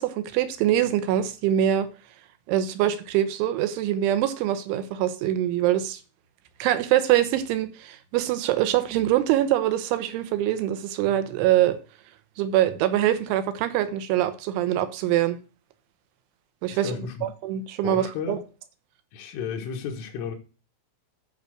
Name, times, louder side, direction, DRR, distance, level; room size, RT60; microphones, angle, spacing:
voice 1, 0.0-1.9 2.5-6.0 6.6-11.8 12.4-15.4 16.6-18.4, right 12 dB, 80° right, 3.3 m, -24 dB
voice 2, 16.7-17.3 17.8-18.4 19.1-20.4, left 6 dB, 80° left, 3.9 m, -33 dB
11.0 x 5.0 x 6.4 m
omnidirectional pair, 5.7 m